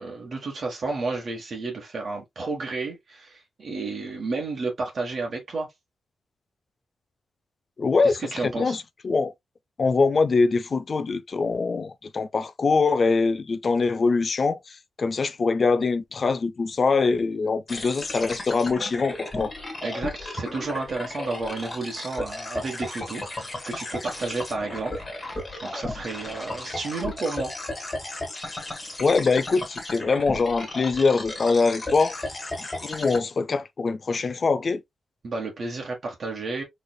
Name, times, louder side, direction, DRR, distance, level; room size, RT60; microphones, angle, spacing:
voice 1, 0.0-5.7 8.0-8.8 19.8-27.5 35.2-36.6, right 3 dB, 55° right, 1.2 m, -32 dB
voice 2, 7.8-9.3 9.8-19.5 29.0-32.2 32.8-34.8, left 4 dB, 45° left, 0.4 m, -23 dB
sound 1, 17.7-33.2, left 2 dB, 25° left, 1.6 m, -35 dB
4.2 x 3.1 x 2.2 m
wide cardioid pair, 120°, 0 cm